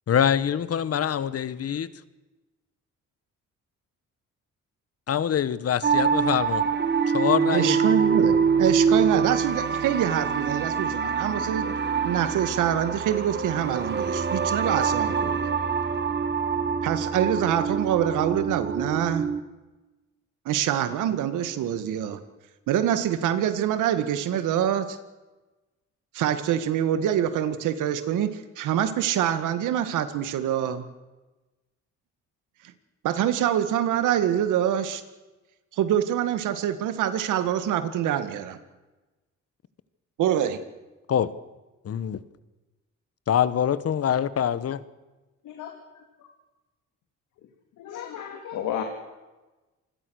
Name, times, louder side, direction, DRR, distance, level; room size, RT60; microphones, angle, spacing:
voice 1, 0.1-1.9 5.1-6.6 7.1-7.8 41.1-41.3 41.8-42.2 43.3-44.8, left 9 dB, 50° left, 1.3 m, -24 dB
sound 1, 5.8-19.4, right 6 dB, 35° right, 1.8 m, -25 dB
voice 2, 7.5-11.7 12.0-15.5 16.8-19.3 20.5-22.2 22.7-25.0 26.1-30.8 33.0-35.0 35.7-38.6 40.2-40.6, right 10 dB, 85° right, 2.0 m, -25 dB
voice 3, 47.8-48.8, left 10 dB, 85° left, 2.6 m, -32 dB
27.0 x 21.0 x 6.5 m
cardioid pair, 90°, 30 cm